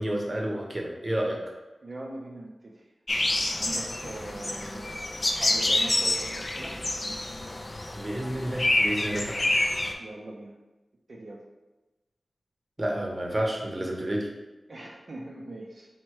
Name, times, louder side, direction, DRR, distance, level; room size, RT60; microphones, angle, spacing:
voice 1, 0.0-1.4 7.9-9.4 12.8-14.3, right 1 dB, 35° right, 0 dB, 0.8 m, -30 dB
voice 2, 1.8-2.9 3.5-5.1 5.4-6.8 10.0-10.5 11.1-11.4 14.7-15.9, right 1 dB, 60° right, -3 dB, 0.5 m, -41 dB
sound 1, 3.1-9.9, left 1 dB, 40° left, 0.4 m, -28 dB
4.4 x 2.2 x 4.5 m, 1.1 s
wide cardioid pair, 70°, 0 cm